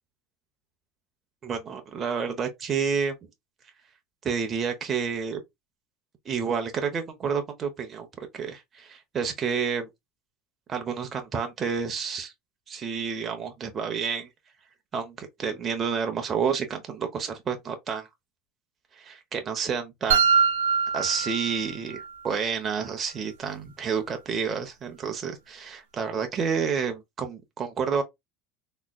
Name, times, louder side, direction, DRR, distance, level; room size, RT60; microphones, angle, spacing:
voice 1, 1.4-3.1 4.2-5.4 6.2-8.1 8.3-9.9 10.7-12.3 12.7-14.3 14.9-18.1 18.9-20.2 20.9-28.0, right 6 dB, 35° right, 0.9 m, -29 dB
sound 1, 20.1-22.1, right 6 dB, 90° right, 0.7 m, -23 dB
3.7 x 3.2 x 2.3 m
hypercardioid pair, 90°, 0 cm